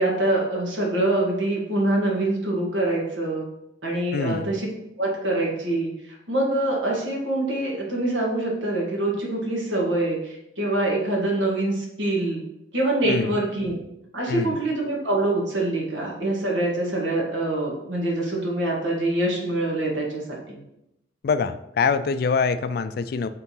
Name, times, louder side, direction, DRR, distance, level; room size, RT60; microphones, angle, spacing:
voice 1, 0.0-3.4 3.8-4.7 5.0-12.4 12.7-13.7 14.1-20.6, right 2 dB, 90° right, -2 dB, 1.7 m, -25 dB
voice 2, 4.1-4.5 13.0-13.3 14.3-14.6 21.2-23.3, left 5 dB, 55° left, 12 dB, 0.3 m, -24 dB
4.5 x 3.8 x 5.5 m, 0.85 s
head